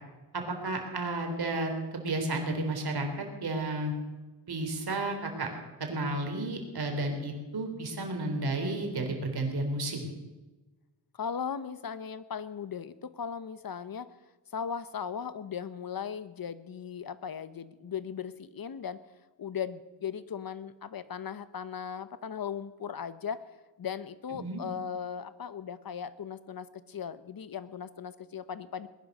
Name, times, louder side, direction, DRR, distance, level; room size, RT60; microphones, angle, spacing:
voice 1, 0.3-3.1 3.4-3.9 4.5-5.5 5.8-10.1 24.3-24.6, right 2 dB, 60° right, 4 dB, 3.7 m, -32 dB
voice 2, 11.1-14.1 14.5-19.0 19.4-23.4 23.8-28.9, left 7 dB, 55° left, 14 dB, 1.0 m, -38 dB
20.0 x 11.0 x 6.7 m, 1.2 s
wide cardioid pair, 95°, 44 cm